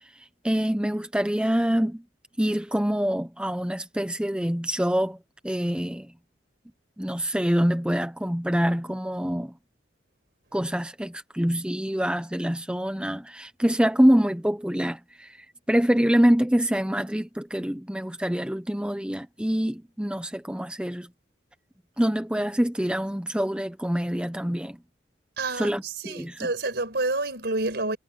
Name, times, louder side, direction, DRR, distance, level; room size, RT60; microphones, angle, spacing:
voice 1, 0.4-2.0 2.4-5.2 5.4-6.1 7.0-9.5 10.5-15.4 15.7-21.1 22.0-24.8 25.6-26.5, equal, 5° right, 0.9 m, -25 dB
voice 2, 25.4-28.0, right 2 dB, 60° right, 5.0 m, -29 dB
head